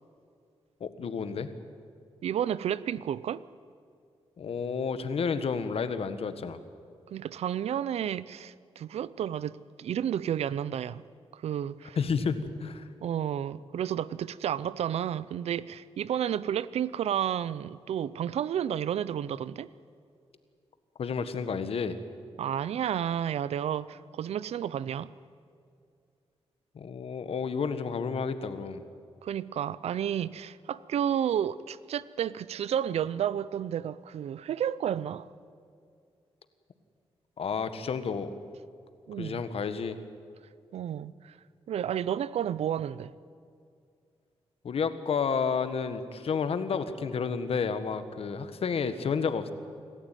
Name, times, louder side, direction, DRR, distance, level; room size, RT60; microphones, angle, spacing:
voice 1, 0.8-1.5 4.4-6.6 12.0-12.9 21.0-21.9 26.7-28.8 37.4-38.3 39.2-40.0 44.6-49.5, left 5 dB, 70° left, 1.5 m, -31 dB
voice 2, 2.2-3.4 7.1-11.0 11.3-12.0 13.0-19.7 22.4-25.1 29.2-35.3 39.1-39.4 40.7-41.3 41.7-43.2, right 9 dB, 90° right, 0.6 m, -31 dB
26.5 x 14.5 x 9.2 m
cardioid pair, 85°, 10 cm